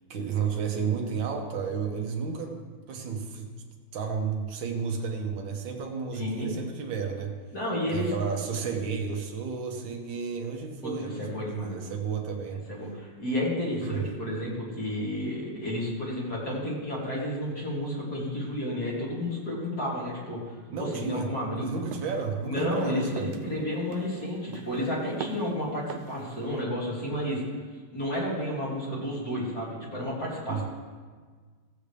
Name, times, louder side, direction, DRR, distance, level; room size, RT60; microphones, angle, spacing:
voice 1, 0.1-2.6 2.9-3.5 3.9-7.4 7.9-12.6 13.8-14.1 20.7-21.3 21.5-23.3 30.5-30.6, right 6 dB, 65° right, 2 dB, 1.8 m, -32 dB
voice 2, 6.1-6.7 7.5-8.1 8.6-8.7 10.8-11.9 12.7-21.7 22.4-27.4 27.9-30.6, left 1 dB, 45° left, -6 dB, 3.2 m, -31 dB
sound 1, 21.9-22.2 22.6-22.9 23.2-23.5 23.9-24.3 24.5-24.9 25.2-25.5 25.9-26.2, right 8 dB, 80° right, 1.4 m, -41 dB
15.5 x 8.0 x 3.4 m, 1.5 s
omnidirectional pair, 2.3 m